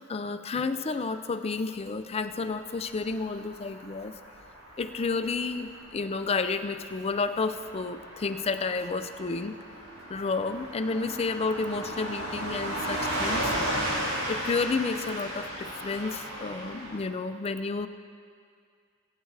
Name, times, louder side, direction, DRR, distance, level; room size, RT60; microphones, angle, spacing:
voice 1, 0.0-4.1 4.8-9.5 10.1-13.9 14.3-17.9, left 4 dB, 30° left, 9 dB, 0.4 m, -31 dB
Car passing by / Truck, 2.6-17.0, right 1 dB, 60° right, 3.0 m, -35 dB
19.5 x 9.1 x 3.3 m, 2.2 s
head